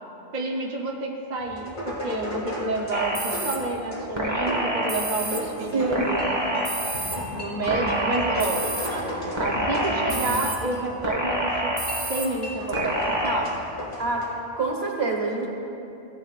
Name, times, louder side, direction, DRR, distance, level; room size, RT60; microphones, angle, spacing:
voice 1, 0.3-6.4 7.4-11.7 12.1-13.6, right 2 dB, 45° right, -1 dB, 0.8 m, -29 dB
sound 1, 1.4-14.3, equal, 45° left, 2.2 m, -34 dB
sound 2, 2.9-3.6 4.2-5.4 5.9-7.2 7.7-8.9 9.4-10.6 11.0-12.3 12.7-13.4, right 1 dB, 25° right, 1.3 m, -27 dB
voice 2, 5.7-6.0 14.0-14.3 14.6-15.5, right 3 dB, 65° right, 0 dB, 1.7 m, -25 dB
15.5 x 10.5 x 2.4 m, 2.9 s
omnidirectional pair, 1.1 m